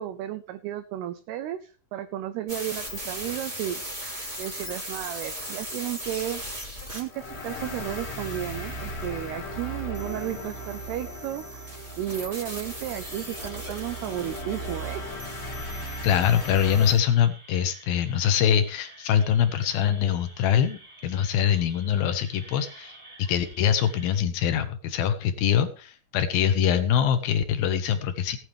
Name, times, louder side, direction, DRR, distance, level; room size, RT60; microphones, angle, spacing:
voice 1, 0.0-3.8 4.4-6.4 6.9-15.0, right 12 dB, 85° right, 10 dB, 2.3 m, -33 dB
sound 1, 2.5-17.0, equal, 10° right, 3.0 m, -39 dB
sound 2, 7.1-16.9, equal, 45° left, 2.6 m, -37 dB
sound 3, 13.0-24.2, right 2 dB, 60° right, 0.7 m, -50 dB
voice 2, 16.0-28.4, left 9 dB, 80° left, 8 dB, 2.2 m, -24 dB
18.0 x 9.4 x 3.4 m, 0.36 s
omnidirectional pair, 5.4 m